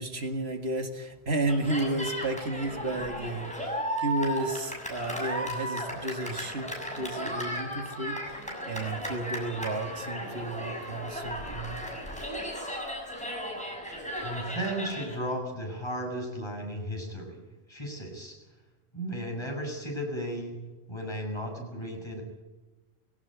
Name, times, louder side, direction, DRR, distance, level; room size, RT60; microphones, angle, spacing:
voice 1, 0.0-11.8, right 2 dB, 80° right, 6 dB, 2.2 m, -32 dB
Cheering, 1.5-15.1, equal, 5° left, 6.7 m, -35 dB
voice 2, 14.2-17.4 17.7-18.4 18.9-20.6 20.9-22.2, equal, 25° left, 0 dB, 7.3 m, -35 dB
22.0 x 17.5 x 9.2 m, 1.1 s
omnidirectional pair, 1.1 m